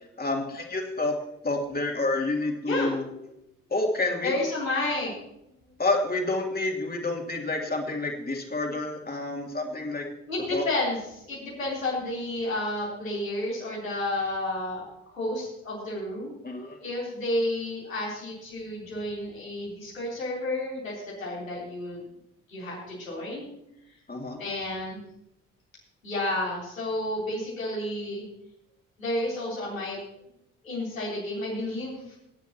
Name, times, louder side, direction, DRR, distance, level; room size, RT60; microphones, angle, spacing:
voice 1, 0.2-1.2 1.4-3.0 3.7-4.3 5.8-10.1 10.5-10.6 16.4-16.8 24.1-24.4, left 2 dB, 25° left, 1 dB, 2.9 m, -28 dB
voice 2, 4.2-5.1 10.3-16.3 16.8-22.0 22.5-23.5 24.4-25.0 26.0-28.3 29.0-30.0 30.6-32.2, left 1 dB, 85° left, -6 dB, 3.8 m, -31 dB
19.5 x 10.5 x 3.0 m, 0.81 s
figure-of-eight pair, 45°, 39 cm